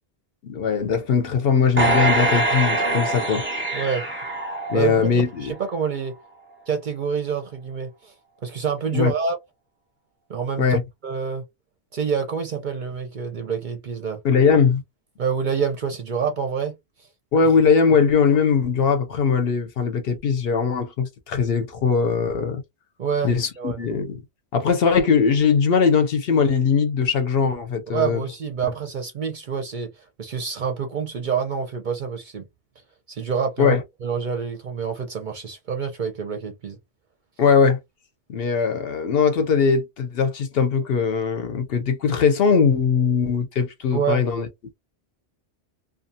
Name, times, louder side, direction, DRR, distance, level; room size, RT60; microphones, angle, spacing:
voice 1, 0.4-3.5 4.7-5.5 8.9-9.1 10.6-10.8 14.2-14.8 17.3-22.6 23.2-24.2 24.5-28.2 33.6-33.8 37.4-37.8 38.3-44.5, left 6 dB, 60° left, 0.8 m, -20 dB
sound 1, 1.8-5.2 5.7-5.8, right 2 dB, 10° right, 0.8 m, -23 dB
voice 2, 3.7-4.0 4.7-6.1 6.7-8.1 8.4-9.4 10.3-10.8 11.0-11.4 11.9-14.2 15.2-16.7 23.0-23.8 27.9-32.4 33.1-36.8 43.9-44.2, right 6 dB, 55° right, 0.6 m, -27 dB
2.5 x 2.3 x 2.6 m
omnidirectional pair, 1.2 m